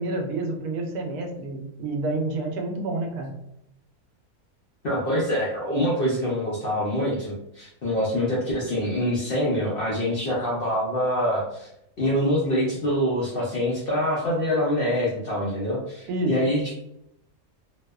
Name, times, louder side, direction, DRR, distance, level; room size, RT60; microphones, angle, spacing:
voice 1, 0.0-3.4 16.1-16.4, right 2 dB, 90° right, 2 dB, 1.1 m, -29 dB
voice 2, 4.8-11.7 12.0-16.8, equal, 60° left, -6 dB, 0.5 m, -25 dB
2.8 x 2.0 x 2.2 m, 0.79 s
omnidirectional pair, 1.5 m